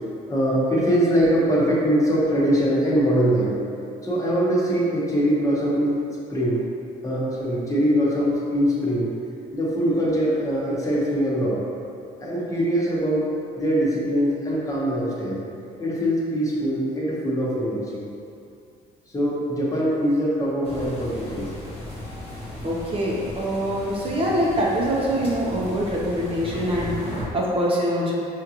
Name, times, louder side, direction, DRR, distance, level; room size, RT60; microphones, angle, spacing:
voice 1, 0.3-3.6 4.0-6.0 6.3-6.6 7.0-9.1 9.5-11.6 12.2-13.3 13.6-15.4 15.8-18.1 19.1-21.5, equal, 20° left, -6 dB, 0.9 m, -22 dB
sound 1, 20.6-27.2, left 1 dB, 35° left, 1.2 m, -36 dB
voice 2, 22.6-28.1, equal, 35° right, -5 dB, 0.6 m, -24 dB
5.2 x 2.4 x 2.9 m, 2.6 s
cardioid pair, 110°, 17 cm